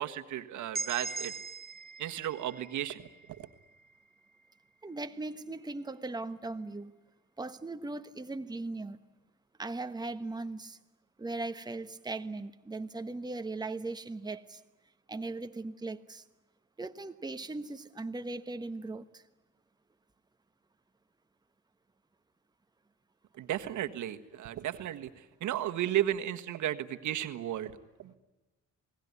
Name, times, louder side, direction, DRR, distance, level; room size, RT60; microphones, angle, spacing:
voice 1, 0.0-1.3 2.0-3.0 3.3-3.5 23.4-28.2, right 12 dB, 75° right, 9 dB, 1.5 m, -34 dB
sound 1, 0.7-4.6, right 4 dB, 30° right, 1.5 m, -41 dB
voice 2, 4.8-6.9 7.4-9.0 9.6-10.8 11.2-14.6 15.1-16.2 16.8-19.2, right 2 dB, 15° right, 9 dB, 1.2 m, -38 dB
28.0 x 20.0 x 9.7 m, 1.1 s
cardioid pair, 90°, 30 cm